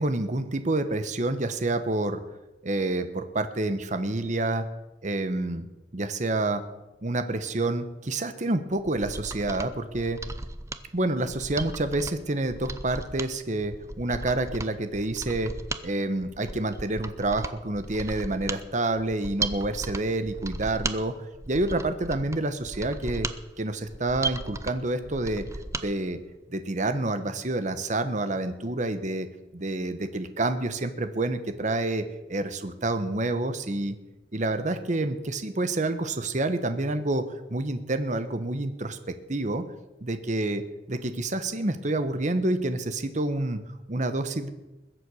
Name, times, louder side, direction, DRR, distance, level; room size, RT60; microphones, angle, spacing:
voice 1, 0.0-2.2 2.6-4.7 5.0-5.7 5.9-6.6 7.0-10.2 10.9-15.5 15.8-21.1 21.5-23.3 23.6-25.4 25.8-26.2 26.5-29.3 29.5-34.0 34.3-37.2 37.5-39.6 40.0-40.6 40.9-43.6 43.9-44.5, right 2 dB, 40° right, 10 dB, 1.0 m, -28 dB
Mechanisms, 8.8-25.9 26.2-26.3, right 3 dB, 15° right, 0.6 m, -36 dB
21.0 x 7.9 x 6.3 m, 1.0 s
head